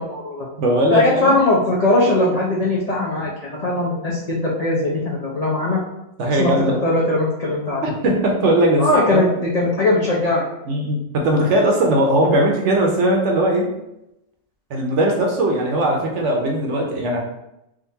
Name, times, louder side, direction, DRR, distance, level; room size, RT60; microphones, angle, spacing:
voice 1, 0.0-0.5 0.9-3.3 3.6-5.8 6.3-6.5 6.8-7.8 8.8-9.3 9.5-10.4, left 2 dB, 65° left, -5 dB, 0.3 m, -19 dB
voice 2, 0.6-1.3 6.2-6.8 7.8-9.2 10.7-13.7 14.7-17.2, right 1 dB, 65° right, 0 dB, 0.9 m, -19 dB
3.7 x 2.6 x 2.7 m, 0.87 s
omnidirectional pair, 1.5 m